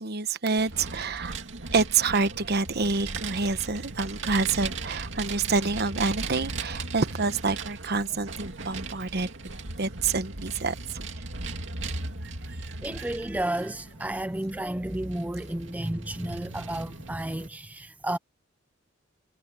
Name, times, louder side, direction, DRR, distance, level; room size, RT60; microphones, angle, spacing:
voice 1, 0.0-1.3 1.7-9.3 9.8-10.8 12.2-13.1, right 4 dB, 55° right, 1.1 m, -27 dB
Vehicle, 0.6-17.5, right 3 dB, 75° right, 2.4 m, -38 dB
voice 2, 12.8-18.2, right 1 dB, 10° right, 0.4 m, -32 dB
head